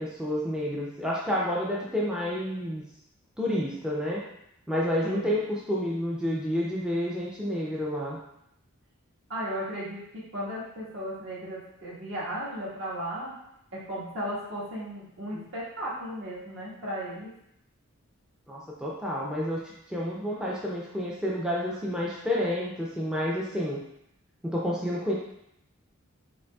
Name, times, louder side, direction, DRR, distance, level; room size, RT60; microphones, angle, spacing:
voice 1, 0.0-2.8 3.4-4.2 4.7-8.2 18.5-19.6 19.9-23.8 24.4-25.2, equal, 5° right, -5 dB, 0.4 m, -29 dB
voice 2, 5.0-5.4 9.3-13.4 13.7-17.3, equal, 60° right, -7 dB, 1.5 m, -35 dB
5.1 x 3.1 x 2.3 m, 0.80 s
head